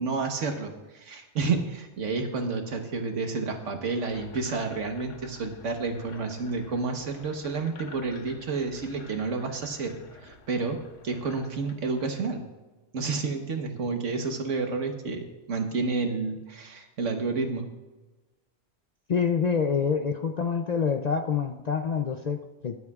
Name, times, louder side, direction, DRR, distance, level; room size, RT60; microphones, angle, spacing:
voice 1, 0.0-10.8 11.0-12.4 12.9-17.7, right 4 dB, 90° right, 4 dB, 1.5 m, -30 dB
sound 1, 4.0-12.2, left 4 dB, 85° left, 1.3 m, -50 dB
voice 2, 19.1-22.8, left 6 dB, 50° left, 6 dB, 0.5 m, -26 dB
22.5 x 8.2 x 2.4 m, 1.1 s
omnidirectional pair, 1.2 m